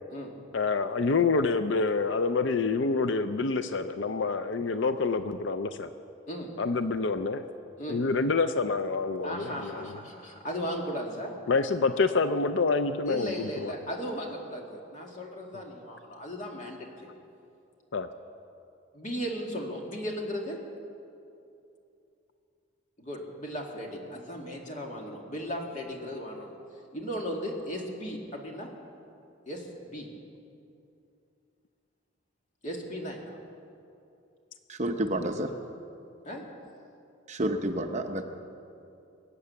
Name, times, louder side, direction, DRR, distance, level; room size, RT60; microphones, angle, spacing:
voice 1, 0.5-5.9 6.6-7.5 7.9-10.0 11.5-13.7 17.9-18.1, left 4 dB, 65° left, 9 dB, 0.5 m, -27 dB
voice 2, 9.2-11.3 13.1-17.1 18.9-20.6 23.0-26.5 26.9-28.7 29.5-30.1 32.6-33.4 36.2-36.4, equal, 40° left, 0 dB, 2.2 m, -36 dB
voice 3, 34.7-35.5 37.3-38.2, right 1 dB, 35° right, 5 dB, 0.9 m, -29 dB
24.0 x 8.7 x 7.0 m, 2.7 s
head